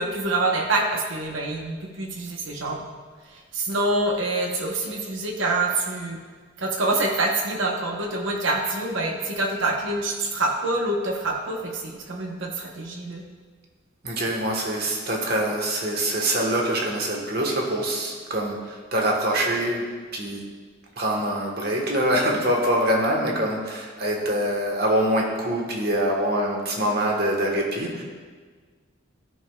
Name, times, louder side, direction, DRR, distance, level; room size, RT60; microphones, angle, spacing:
voice 1, 0.0-2.9 3.3-6.2 6.6-13.2, right 2 dB, 75° right, 1 dB, 1.0 m, -26 dB
voice 2, 14.0-19.9 20.1-20.4 21.0-28.0, right 1 dB, 50° right, 0 dB, 1.3 m, -24 dB
13.5 x 5.4 x 2.3 m, 1.5 s
head